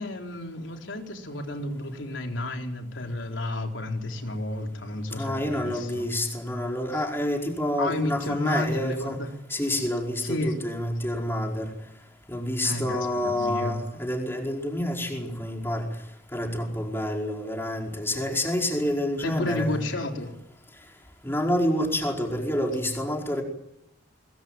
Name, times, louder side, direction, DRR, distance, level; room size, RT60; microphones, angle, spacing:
voice 1, 0.0-6.0 6.9-7.0 7.8-9.3 10.2-10.6 12.6-13.7 19.2-20.3, left 1 dB, 85° left, 3 dB, 4.0 m, -31 dB
voice 2, 5.1-9.2 9.5-11.7 12.3-15.9 16.3-19.8 21.2-23.4, left 1 dB, 10° left, 1 dB, 4.9 m, -28 dB
23.5 x 22.5 x 9.0 m, 0.78 s
head